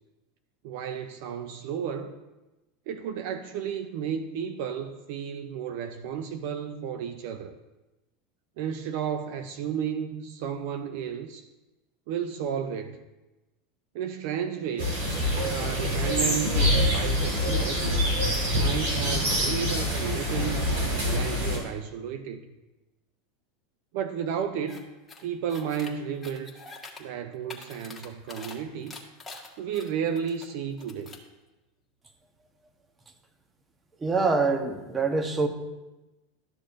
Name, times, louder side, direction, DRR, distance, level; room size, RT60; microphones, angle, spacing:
voice 1, 0.6-2.2 2.9-7.6 8.6-11.4 12.1-13.0 13.9-15.0 15.5-18.1 18.5-20.7 21.0-22.5 23.9-24.9 25.2-26.6 27.0-29.0 29.6-31.2, right 8 dB, 65° right, 0.5 m, -33 dB
sound 1, 14.8-21.6, equal, 85° right, 3.0 m, -25 dB
sound 2, 24.7-24.8 25.1-25.9 26.2-27.0 27.3-28.6 28.9-30.5 30.8-31.3, left 3 dB, 10° left, 1.5 m, -44 dB
voice 2, 34.0-35.5, right 4 dB, 20° right, 1.1 m, -25 dB
12.5 x 6.6 x 2.6 m
hypercardioid pair, 100°, 0 cm